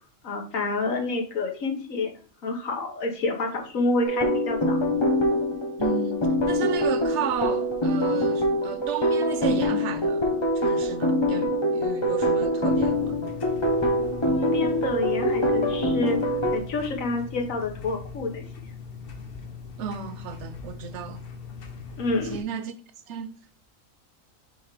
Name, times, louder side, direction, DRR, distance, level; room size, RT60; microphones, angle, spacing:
voice 1, 0.2-2.1 2.4-4.8 14.3-18.4 22.0-22.4, left 3 dB, 90° left, 1.6 m, -28 dB
sound 1, 4.0-16.6, equal, 25° left, 1.0 m, -24 dB
voice 2, 5.8-13.2 19.8-21.2 22.2-22.7 23.1-23.3, right 8 dB, 65° right, 0.9 m, -33 dB
sound 2, 12.7-22.4, left 5 dB, 50° left, 1.0 m, -40 dB
6.2 x 3.6 x 4.8 m
omnidirectional pair, 1.4 m